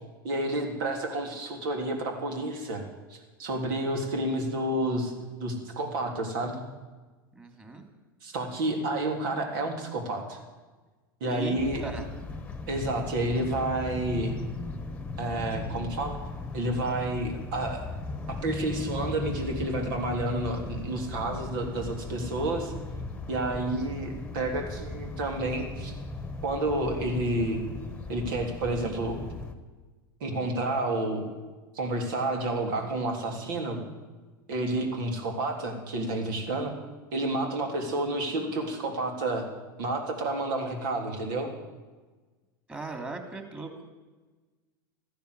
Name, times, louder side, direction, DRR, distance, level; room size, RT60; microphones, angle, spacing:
voice 1, 0.2-2.8 3.1-6.6 8.2-10.4 11.2-11.8 12.7-14.3 15.2-16.2 16.5-17.9 18.3-22.7 23.3-25.9 26.4-27.6 28.1-29.2 30.2-31.3 31.7-33.8 34.5-36.7 37.1-39.5 39.8-41.5, right 2 dB, 70° right, 3 dB, 3.4 m, -30 dB
voice 2, 7.3-7.8 11.3-12.1 42.7-43.8, right 3 dB, 15° right, 4 dB, 2.9 m, -38 dB
sound 1, 11.6-29.5, left 3 dB, 10° left, 1.4 m, -37 dB
14.0 x 10.5 x 8.2 m, 1.3 s
hypercardioid pair, 100°, 12 cm